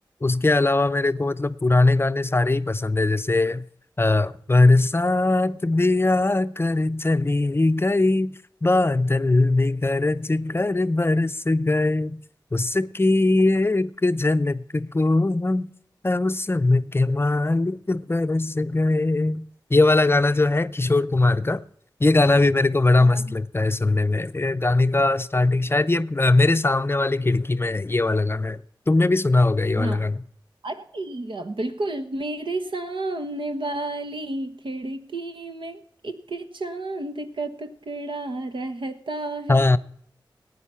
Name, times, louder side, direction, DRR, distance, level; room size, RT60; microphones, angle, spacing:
voice 1, 0.2-3.7 4.0-8.3 8.6-12.2 12.5-15.7 16.0-21.6 22.0-30.2 39.5-39.8, left 2 dB, 30° left, 0.5 m, -21 dB
voice 2, 23.0-23.3 29.8-30.0 30.6-39.6, right 2 dB, 75° right, 1.3 m, -31 dB
16.5 x 9.5 x 5.7 m
cardioid pair, 55°, 9 cm